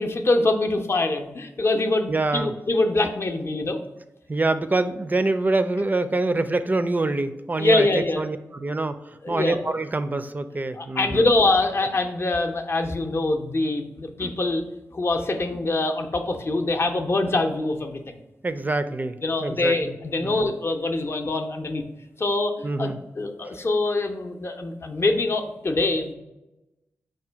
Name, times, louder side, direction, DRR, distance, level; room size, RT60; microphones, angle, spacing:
voice 1, 0.0-3.8 7.6-8.2 9.2-9.6 10.8-14.6 14.9-18.0 19.2-21.8 22.2-26.1, left 2 dB, 40° left, 4 dB, 0.6 m, -24 dB
voice 2, 2.1-2.5 4.3-11.3 18.4-19.9 20.2-20.5 22.6-23.0, right 2 dB, 30° right, 11 dB, 0.4 m, -26 dB
4.8 x 2.2 x 4.4 m, 1.0 s
cardioid pair, 45°, 6 cm